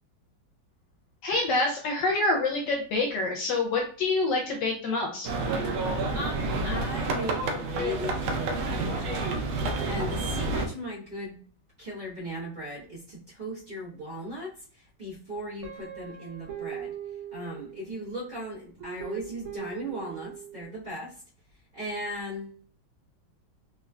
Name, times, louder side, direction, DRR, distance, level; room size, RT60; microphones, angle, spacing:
voice 1, 1.2-5.3, left 2 dB, 75° left, 1 dB, 1.1 m, -26 dB
sound 1, 5.2-10.7, right 2 dB, 75° right, 1.2 m, -29 dB
voice 2, 6.1-9.5 9.8-11.4 11.8-16.9 17.3-21.2 21.7-22.7, equal, 30° right, -10 dB, 1.0 m, -37 dB
Guitar, 15.6-18.1 18.8-20.7, right 10 dB, 90° right, 1.7 m, -40 dB
3.5 x 3.0 x 2.3 m, 0.44 s
omnidirectional pair, 2.2 m